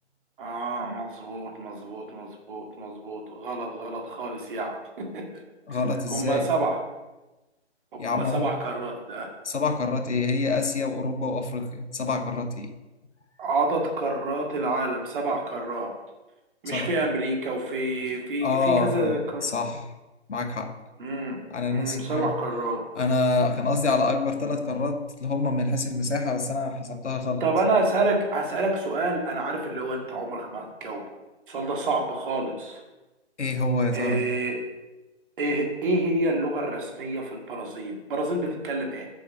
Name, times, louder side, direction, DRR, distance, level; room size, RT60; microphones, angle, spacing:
voice 1, 0.4-5.3 5.7-5.8 6.1-6.8 8.1-9.3 13.4-15.9 16.6-19.4 21.0-21.4 21.7-22.8 27.4-31.0 31.5-32.8 33.9-34.6 35.4-39.1, right 2 dB, 50° right, 1 dB, 2.1 m, -28 dB
voice 2, 5.7-6.5 8.0-8.5 9.4-12.7 16.7-16.9 18.4-19.2 19.4-19.9 20.3-20.8 21.5-22.3 22.9-27.4 33.4-34.2, left 3 dB, 85° left, 6 dB, 1.2 m, -26 dB
6.9 x 4.8 x 7.0 m, 1.1 s
figure-of-eight pair, 145°, 35 cm